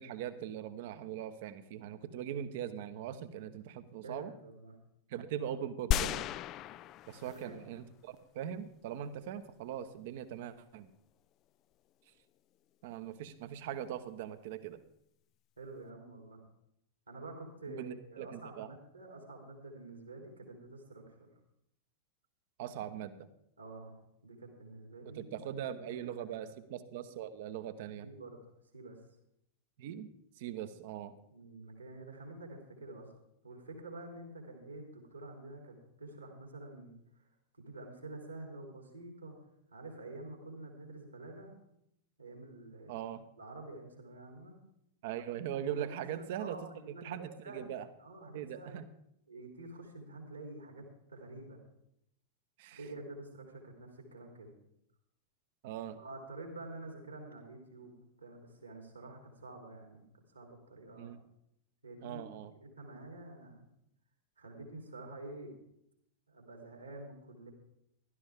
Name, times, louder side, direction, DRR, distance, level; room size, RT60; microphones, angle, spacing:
voice 1, 0.0-4.3 5.1-6.3 7.1-10.9 12.8-14.8 17.7-18.7 22.6-23.3 25.1-28.1 29.8-30.1 30.4-31.1 42.9-43.2 45.0-46.6 47.0-47.2 47.5-47.9 48.3-48.8 52.6-52.8 55.6-56.0 61.0-61.2 62.0-62.5, right 10 dB, 50° right, 12 dB, 1.0 m, -41 dB
voice 2, 4.0-4.8 7.2-7.7 15.6-16.4 17.1-21.3 23.6-25.9 26.5-26.6 28.0-28.4 28.7-29.0 31.3-33.1 33.4-37.2 37.6-39.4 39.7-41.5 42.2-43.1 43.4-44.6 45.7-48.8 49.3-51.6 52.7-54.5 56.0-60.0 60.3-61.2 61.8-62.3 62.6-63.7 64.4-65.5 66.3-67.5, right 2 dB, 80° right, 2 dB, 3.5 m, -48 dB
sound 1, 5.9-7.7 8.2-8.3, left 12 dB, 35° left, 0.4 m, -34 dB
16.0 x 12.5 x 3.7 m, 0.75 s
figure-of-eight pair, 90°, 0 cm